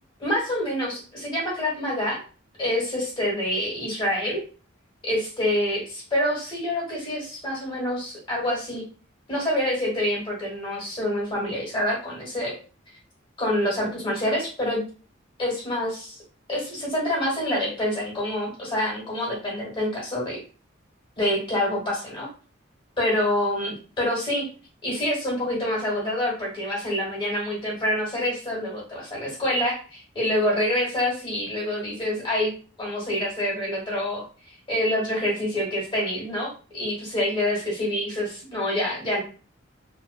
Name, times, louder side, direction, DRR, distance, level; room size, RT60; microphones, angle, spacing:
voice 1, 0.2-2.2 2.6-4.4 5.0-8.8 9.3-12.6 13.4-14.8 15.4-16.2 16.5-20.4 21.2-22.3 23.0-24.5 24.8-32.5 32.8-39.2, left 1 dB, 25° left, -5 dB, 1.2 m, -26 dB
2.7 x 2.1 x 2.2 m, 0.38 s
head